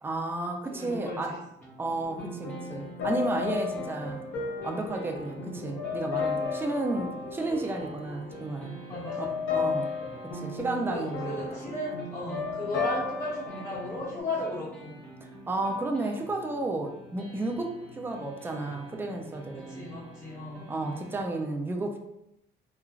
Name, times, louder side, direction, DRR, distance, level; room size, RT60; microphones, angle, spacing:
voice 1, 0.0-1.4 1.8-4.2 4.6-8.8 9.2-9.9 10.3-11.5 15.2-19.9 20.7-22.0, right 2 dB, 10° right, 3 dB, 0.4 m, -32 dB
voice 2, 0.7-1.4 8.9-9.8 10.9-14.9 19.5-20.7, left 2 dB, 35° left, -10 dB, 1.3 m, -36 dB
sound 1, 1.6-21.2, equal, 10° left, 0.9 m, -49 dB
sound 2, 2.0-14.2, left 4 dB, 80° left, 0.7 m, -34 dB
3.1 x 2.2 x 2.3 m, 0.82 s
cardioid pair, 90°, 20 cm